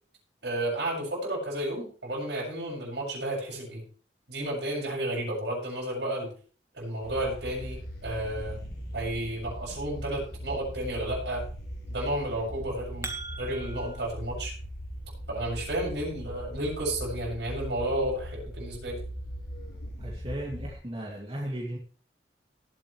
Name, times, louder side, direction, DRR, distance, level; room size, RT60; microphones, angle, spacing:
voice 1, 0.4-3.8 4.3-6.3 6.7-8.6 8.9-11.4 11.9-13.1 13.4-14.5 15.3-19.0, right 1 dB, 75° right, -3 dB, 7.5 m, -32 dB
sound 1, 7.0-20.7, equal, 60° left, 7.7 m, -39 dB
sound 2, 12.6-14.1, right 3 dB, 15° right, 1.6 m, -40 dB
voice 2, 20.0-21.8, right 1 dB, 35° right, -2 dB, 2.5 m, -36 dB
19.0 x 8.5 x 3.3 m, 0.41 s
head